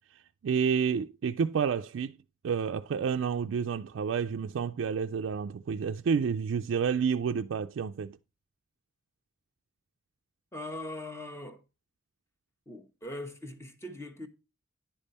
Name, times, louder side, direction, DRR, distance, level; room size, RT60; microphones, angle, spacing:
voice 1, 0.4-2.1 2.4-8.2, right 6 dB, 70° right, 0.3 m, -29 dB
voice 2, 10.5-11.6 12.7-14.3, left 1 dB, 15° left, 1.0 m, -41 dB
10.0 x 5.3 x 4.2 m
head